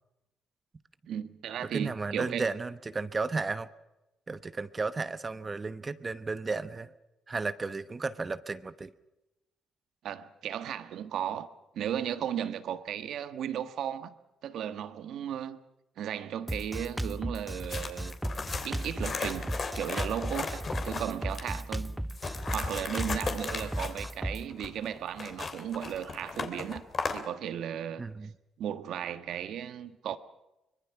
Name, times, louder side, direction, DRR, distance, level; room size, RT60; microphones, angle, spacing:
voice 1, 1.1-2.5 10.0-11.5 11.7-14.1 14.4-15.6 16.0-18.1 18.6-22.0 22.5-26.8 27.1-28.0 28.6-30.2, right 9 dB, 75° right, 1.5 m, -35 dB
voice 2, 1.7-3.7 4.3-6.9 7.3-8.9 28.0-28.3, right 4 dB, 30° right, 1.0 m, -34 dB
Drum kit, 16.5-24.4, right 1 dB, 5° right, 0.6 m, -35 dB
sound 1, 17.6-21.6 22.1-27.2, left 4 dB, 45° left, 3.1 m, -36 dB
24.5 x 22.0 x 5.9 m
cardioid pair, 90°, 0 cm